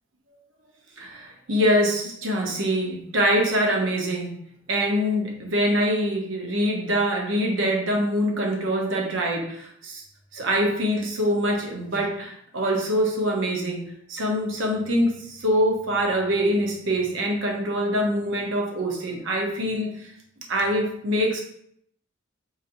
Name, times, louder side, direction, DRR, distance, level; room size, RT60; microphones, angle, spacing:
voice 1, 1.0-4.4 4.7-10.0 10.3-19.9 20.5-21.4, equal, 65° right, 0 dB, 0.8 m, -24 dB
4.0 x 2.9 x 2.6 m, 0.69 s
head